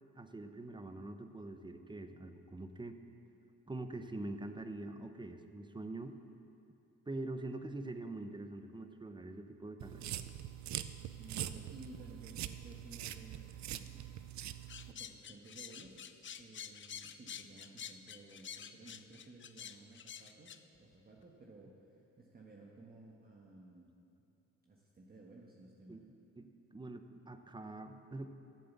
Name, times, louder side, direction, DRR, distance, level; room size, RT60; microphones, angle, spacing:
voice 1, 0.2-3.0 3.7-6.2 7.1-10.1 25.9-26.0 26.4-28.4, right 2 dB, 15° right, 8 dB, 0.8 m, -44 dB
sound 1, 9.8-14.9, right 11 dB, 65° right, 0.6 m, -43 dB
voice 2, 11.2-14.1 14.9-23.9 24.6-26.0, right 2 dB, 30° right, -3 dB, 1.4 m, -56 dB
sound 2, 14.7-20.6, left 8 dB, 40° left, 0.6 m, -48 dB
13.5 x 7.5 x 7.3 m, 2.7 s
cardioid pair, 90°, 30 cm